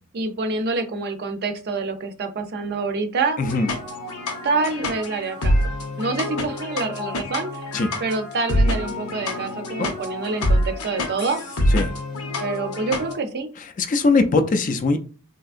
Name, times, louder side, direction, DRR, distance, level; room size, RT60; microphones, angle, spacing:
voice 1, 0.1-3.4 4.4-7.5 8.0-11.4 12.4-13.5, right 3 dB, 50° right, 7 dB, 0.5 m, -26 dB
sound 1, 3.4-13.1, left 1 dB, 90° left, 0.8 m, -26 dB
voice 2, 13.8-15.0, left 3 dB, 35° left, 7 dB, 0.4 m, -20 dB
3.4 x 2.8 x 2.4 m, 0.36 s
head